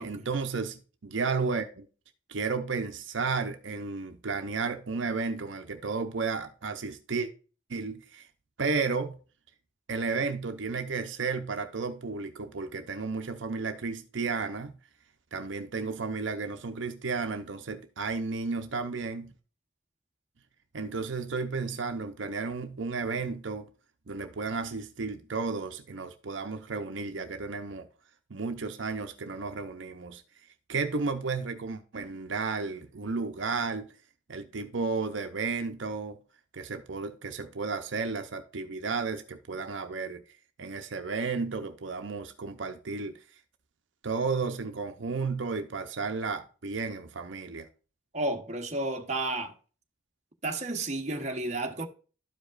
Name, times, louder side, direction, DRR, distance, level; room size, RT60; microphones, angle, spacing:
voice 1, 0.0-1.9 2.3-7.3 7.7-8.3 8.6-9.2 9.9-14.7 15.3-19.3 20.7-23.7 24.1-27.9 28.3-30.2 30.7-33.9 34.3-36.2 36.5-40.2 40.6-43.1 44.0-47.7, right 4 dB, 75° right, 0.7 m, -33 dB
voice 2, 48.1-49.5 50.4-51.9, right 2 dB, 35° right, 1.1 m, -32 dB
12.5 x 5.1 x 2.5 m
head